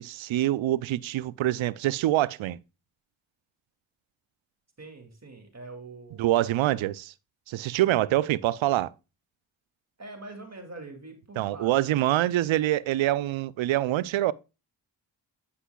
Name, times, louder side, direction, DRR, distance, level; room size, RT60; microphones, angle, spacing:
voice 1, 0.0-2.6 6.2-7.1 7.5-8.9 11.4-14.3, right 14 dB, 80° right, 0.5 m, -25 dB
voice 2, 4.8-6.9 7.9-8.1 10.0-12.5, right 2 dB, 35° right, 2.3 m, -45 dB
10.0 x 5.5 x 2.2 m
supercardioid pair, 45°, 46 cm